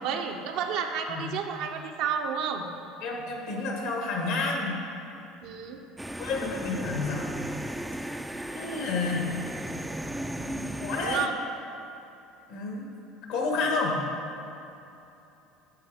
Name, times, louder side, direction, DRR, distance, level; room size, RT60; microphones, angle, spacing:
voice 1, 0.0-2.7 5.4-5.8 11.0-11.3, right 7 dB, 65° right, 4 dB, 0.7 m, -31 dB
voice 2, 3.0-4.8 6.2-7.3 8.5-9.3 10.3-11.2 12.5-12.9 13.3-14.0, left 3 dB, 75° left, 0 dB, 1.4 m, -30 dB
sound 1, 6.0-11.3, right 1 dB, 5° right, 0.3 m, -35 dB
10.5 x 3.5 x 4.9 m, 2.9 s
hypercardioid pair, 75°, 0 cm